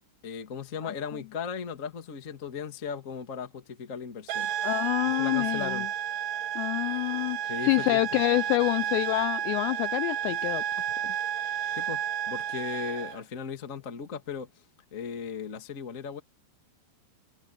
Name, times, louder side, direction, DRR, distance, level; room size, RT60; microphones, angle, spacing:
voice 1, 0.2-4.5 5.1-5.9 7.5-8.2 11.7-14.5 14.9-16.2, left 6 dB, 35° left, 1.2 m, -37 dB
sound 1, 4.3-13.2, right 10 dB, 85° right, 1.8 m, -31 dB
voice 2, 4.6-5.9 6.6-7.4 7.6-10.6 11.0-11.1 11.4-11.7, left 20 dB, 85° left, 2.5 m, -27 dB
omnidirectional pair, 5.4 m